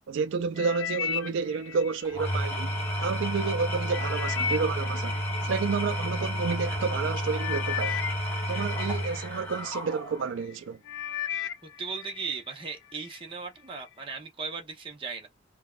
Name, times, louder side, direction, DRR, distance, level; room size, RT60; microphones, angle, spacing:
voice 1, 0.1-8.0 8.5-10.8, right 5 dB, 85° right, 0.4 m, -30 dB
sound 1, 0.6-2.9 3.4-6.3 7.0-7.1 7.4-9.8 10.3-10.6 10.9-12.4 12.7-13.2 13.8-13.9, left 8 dB, 90° left, 0.5 m, -36 dB
Engine / Tools, 2.0-10.4, equal, 10° left, 1.5 m, -31 dB
voice 2, 11.8-15.3, right 5 dB, 30° right, 0.8 m, -37 dB
3.4 x 2.3 x 2.4 m
head